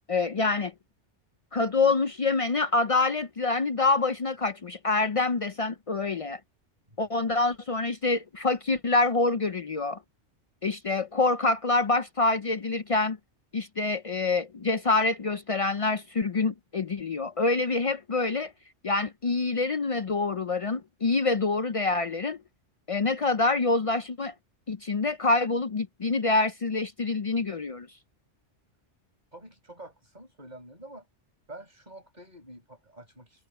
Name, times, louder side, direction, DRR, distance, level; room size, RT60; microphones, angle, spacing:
voice 1, 0.1-0.7 1.5-6.4 7.0-10.0 10.6-13.2 13.5-18.5 18.8-22.4 22.9-24.3 24.7-27.9, left 3 dB, 50° left, 0.4 m, -26 dB
voice 2, 29.3-31.1 31.5-33.5, right 1 dB, 35° right, 8.2 m, -47 dB
omnidirectional pair, 1.2 m